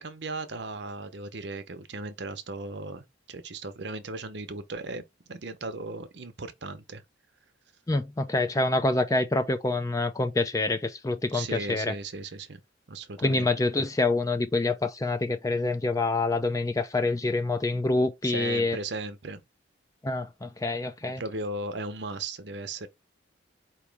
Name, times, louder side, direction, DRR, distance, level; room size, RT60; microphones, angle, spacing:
voice 1, 0.0-7.0 11.3-12.6 12.9-13.5 18.2-19.4 21.2-22.9, right 2 dB, 60° right, 0.7 m, -37 dB
voice 2, 7.9-11.9 13.2-18.8 20.0-21.2, left 2 dB, 15° left, 0.4 m, -26 dB
4.6 x 3.0 x 3.4 m
head